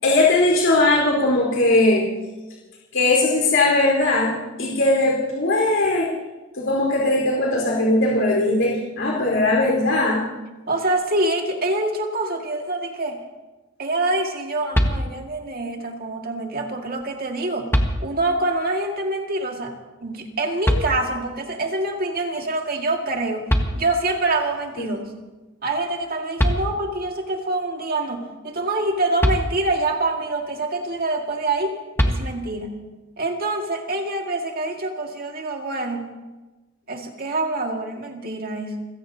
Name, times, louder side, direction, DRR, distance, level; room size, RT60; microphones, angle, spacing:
voice 1, 0.0-2.0 2.9-6.1 6.6-10.2 24.8-24.9, left 2 dB, 70° left, -3 dB, 4.4 m, -19 dB
voice 2, 10.7-13.2 13.8-17.7 18.0-19.8 20.0-23.5 23.7-25.2 25.6-32.8 33.2-36.1 36.9-38.9, right 2 dB, 50° right, 2 dB, 2.0 m, -25 dB
sound 1, 14.7-15.5 17.0-17.1 17.7-18.5 20.6-21.4 23.2-23.3 23.5-24.3 26.0-26.1 26.4-27.1 29.2-30.0 32.0-32.7, equal, 10° left, 1.4 m, -23 dB
30.0 x 17.0 x 2.8 m, 1.2 s
head